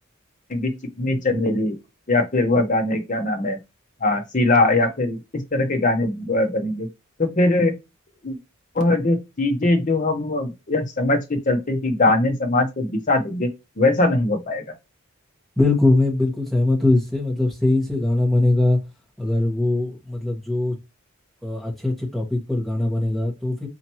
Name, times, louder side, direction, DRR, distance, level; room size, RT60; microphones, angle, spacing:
voice 1, 0.5-1.8 2.1-3.6 4.0-6.9 7.2-7.7 8.2-8.4 8.7-13.5 13.8-14.7, left 2 dB, 35° left, 0.8 m, -21 dB
voice 2, 15.6-18.8 19.2-20.8 21.4-23.7, left 2 dB, ahead, 1.4 m, -21 dB
4.3 x 2.8 x 3.0 m
head